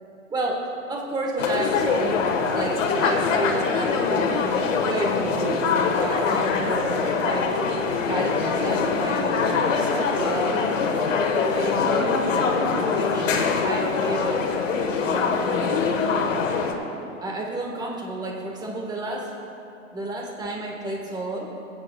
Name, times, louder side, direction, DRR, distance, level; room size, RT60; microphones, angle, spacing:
voice 1, 0.3-2.2 2.5-5.7 6.0-7.5 8.1-10.7 11.3-12.2 12.7-14.5 15.0-15.7 17.2-19.3 19.9-21.5, right 2 dB, 10° right, 0 dB, 1.3 m, -31 dB
sound 1, 1.4-16.7, left 5 dB, 70° left, 1.3 m, -23 dB
23.0 x 8.7 x 2.2 m, 2.8 s
hypercardioid pair, 125°, 40 cm